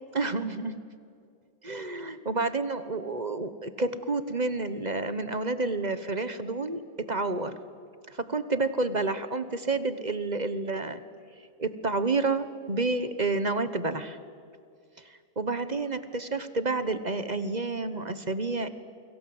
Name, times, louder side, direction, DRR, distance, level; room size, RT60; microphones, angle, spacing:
voice 1, 0.1-0.8 1.6-7.6 8.1-11.0 11.6-14.2 15.4-18.7, right 3 dB, 30° right, 12 dB, 1.1 m, -29 dB
29.5 x 23.0 x 8.0 m, 2.3 s
omnidirectional pair, 1.9 m